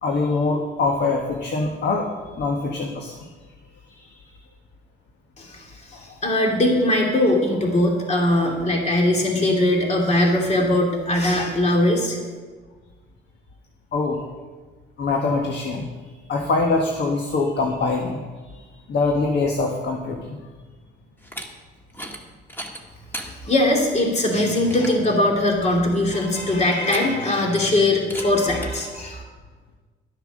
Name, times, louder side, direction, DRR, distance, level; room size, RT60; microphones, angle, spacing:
voice 1, 0.0-3.3 3.9-4.2 5.9-6.0 13.9-14.2 15.0-15.8 16.3-18.6 18.9-20.4, left 3 dB, 60° left, 2 dB, 1.4 m, -24 dB
voice 2, 5.4-12.2 23.4-29.2, left 1 dB, 35° left, 0 dB, 2.6 m, -20 dB
sound 1, 21.2-21.5 21.9-22.2 22.5-23.3 23.8-23.9 24.3-24.4 24.7-25.0 26.7-27.3 27.5-27.8 28.1-28.3 28.6-28.7, equal, 10° left, 1.8 m, -35 dB
12.5 x 8.0 x 6.3 m, 1.4 s
cardioid pair, 90°, 20 cm